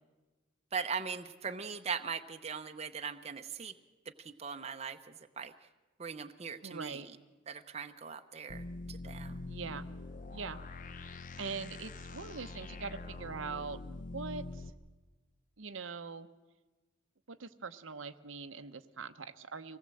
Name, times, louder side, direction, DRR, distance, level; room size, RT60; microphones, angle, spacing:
voice 1, 0.7-3.7 4.2-5.5 6.0-7.0 7.5-8.6 8.9-9.4, right 6 dB, 30° right, 7 dB, 0.8 m, -40 dB
voice 2, 6.6-7.1 9.5-9.9 10.3-10.6 11.0-14.7 15.6-16.3 17.3-19.8, right 5 dB, 70° right, 9 dB, 0.9 m, -42 dB
sound 1, 8.5-14.7, left 2 dB, 40° left, 0.8 m, -44 dB
24.5 x 18.0 x 7.7 m, 1.2 s
head